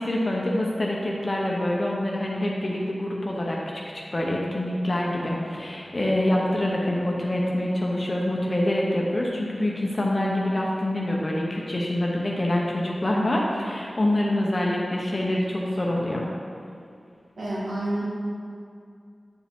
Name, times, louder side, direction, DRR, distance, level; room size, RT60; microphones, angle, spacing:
voice 1, 0.0-3.6 4.1-16.3, left 1 dB, 40° left, -2 dB, 0.8 m, -25 dB
voice 2, 17.4-18.0, right 1 dB, 85° right, -7 dB, 1.8 m, -29 dB
8.7 x 4.9 x 3.6 m, 2.3 s
wide cardioid pair, 85°, 0 cm